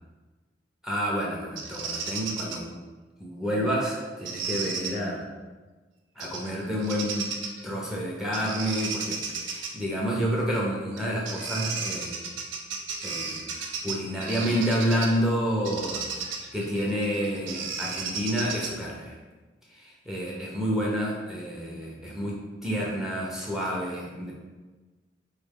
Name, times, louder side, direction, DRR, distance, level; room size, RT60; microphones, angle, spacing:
voice 1, 0.8-2.7 3.2-5.3 6.2-7.3 7.6-12.2 13.0-19.2 19.7-24.3, equal, 5° right, -4 dB, 0.6 m, -29 dB
Bird vocalization bird call bird song, 1.6-2.6 4.2-4.9 6.2-6.5 6.8-7.6 8.3-9.7 10.9-11.0 11.3-15.2 15.6-18.9, right 5 dB, 80° right, 0.6 m, -34 dB
4.3 x 3.2 x 3.6 m, 1.3 s
head